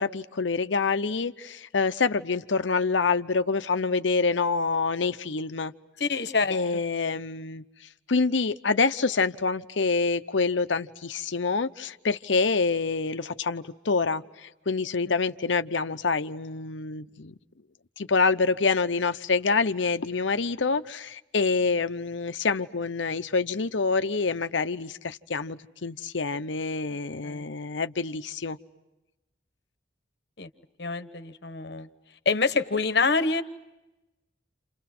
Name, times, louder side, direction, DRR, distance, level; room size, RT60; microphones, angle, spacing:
voice 1, 0.0-5.7 6.5-7.6 8.1-17.4 18.0-28.6, left 4 dB, 80° left, 11 dB, 0.8 m, -26 dB
voice 2, 6.0-6.6 15.1-15.2 27.2-27.4 30.4-30.5 30.8-31.9 32.2-33.4, left 4 dB, 60° left, 10 dB, 1.2 m, -26 dB
29.5 x 28.5 x 6.1 m, 1.0 s
head